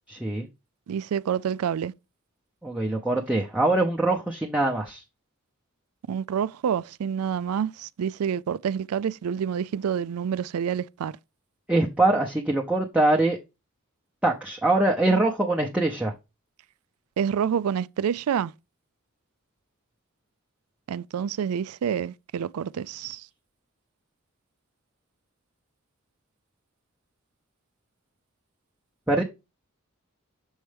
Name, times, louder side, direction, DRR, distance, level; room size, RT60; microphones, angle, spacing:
voice 1, 0.1-0.5 2.6-5.0 11.7-13.4 14.2-16.1 29.1-29.2, right 2 dB, 5° right, 0.6 m, -23 dB
voice 2, 0.9-1.9 6.1-11.1 17.2-18.5 20.9-23.2, right 8 dB, 90° right, 0.4 m, -28 dB
6.4 x 4.5 x 3.3 m
head